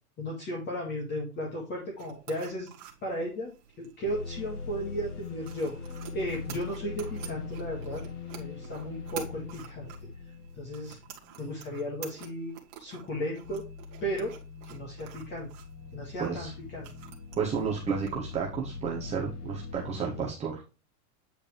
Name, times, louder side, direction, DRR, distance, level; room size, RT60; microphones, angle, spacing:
voice 1, 0.2-2.7 3.0-3.5 3.8-5.7 6.1-8.0 8.4-9.9 10.6-11.0 11.4-12.5 12.8-13.6 14.0-14.3 14.6-15.5 15.9-16.9, equal, 20° left, -3 dB, 2.1 m, -35 dB
sound 1, 2.0-18.4, right 9 dB, 40° right, 1.9 m, -49 dB
sound 2, 4.0-11.4 12.0-12.2 15.3-20.3, left 4 dB, 75° left, 2.8 m, -41 dB
sound 3, 13.4-19.2, left 5 dB, 40° left, 1.1 m, -48 dB
voice 2, 16.2-16.5 17.4-20.6, right 6 dB, 15° right, -2 dB, 1.0 m, -32 dB
9.0 x 4.8 x 3.3 m, 0.32 s
supercardioid pair, 155°, 47 cm